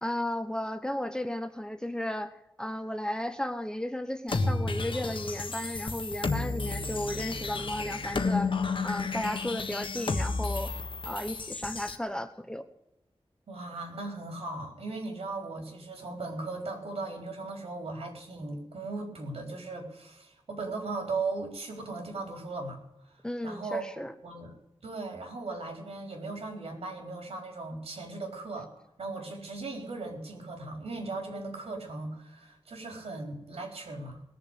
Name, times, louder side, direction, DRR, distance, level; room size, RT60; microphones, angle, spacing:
voice 1, 0.0-2.3 2.6-8.5 8.8-10.7 11.1-12.6 23.2-24.1, left 1 dB, 10° left, 9 dB, 1.0 m, -34 dB
sound 1, 4.3-12.0, left 3 dB, 60° left, 1.5 m, -32 dB
voice 2, 13.5-22.8 23.4-24.5 24.8-28.7 29.0-34.2, right 3 dB, 85° right, 2 dB, 4.2 m, -37 dB
19.5 x 7.2 x 8.2 m, 0.84 s
wide cardioid pair, 125°, 10 cm